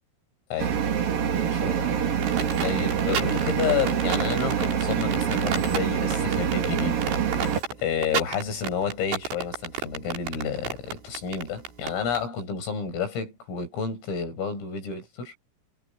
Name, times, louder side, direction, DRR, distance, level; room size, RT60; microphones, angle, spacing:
sound 1, 0.6-7.6, right 8 dB, 50° right, 4.0 m, -25 dB
voice 1, 1.4-15.3, left 6 dB, 85° left, 9.9 m, -31 dB
sound 2, 2.2-12.2, right 6 dB, 65° right, 7.5 m, -32 dB
omnidirectional pair, 5.8 m